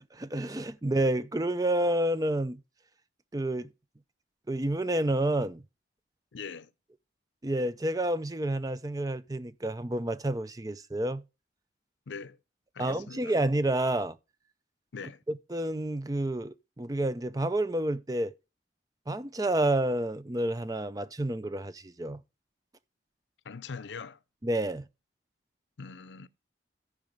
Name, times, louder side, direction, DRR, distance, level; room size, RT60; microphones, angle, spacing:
voice 1, 0.1-2.6 3.3-3.7 4.5-5.6 7.4-11.2 12.8-14.2 15.3-18.3 19.1-22.2 24.4-24.9, right 1 dB, 20° right, 0.5 m, -29 dB
voice 2, 6.3-6.7 12.1-12.4 12.7-13.4 14.9-15.2 23.4-24.2 25.8-26.3, left 5 dB, 90° left, 0.6 m, -42 dB
13.5 x 4.7 x 5.2 m
head